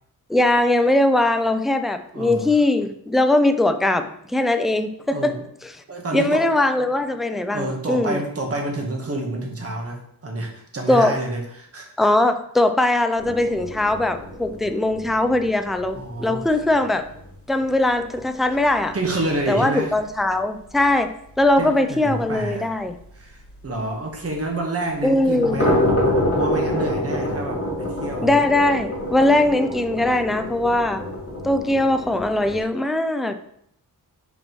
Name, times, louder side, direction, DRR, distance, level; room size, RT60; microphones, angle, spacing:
voice 1, 0.3-5.4 6.1-8.2 10.9-11.2 12.0-17.1 17.5-19.0 19.5-23.0 25.0-25.6 28.2-31.0 31.4-33.3, left 2 dB, ahead, 8 dB, 0.3 m, -20 dB
voice 2, 2.1-2.5 5.1-5.4 5.9-6.6 7.5-12.1 15.9-16.5 18.9-19.9 21.6-22.7 23.1-25.8 26.3-28.4, right 1 dB, 40° right, 1 dB, 1.3 m, -28 dB
sound 1, 13.2-19.1 19.3-19.4 19.9-20.0 20.3-20.4 20.7-20.8 23.6-23.7 25.2-32.6, left 1 dB, 35° left, 2.5 m, -27 dB
5.7 x 5.3 x 3.1 m, 0.70 s
wide cardioid pair, 125°, 38 cm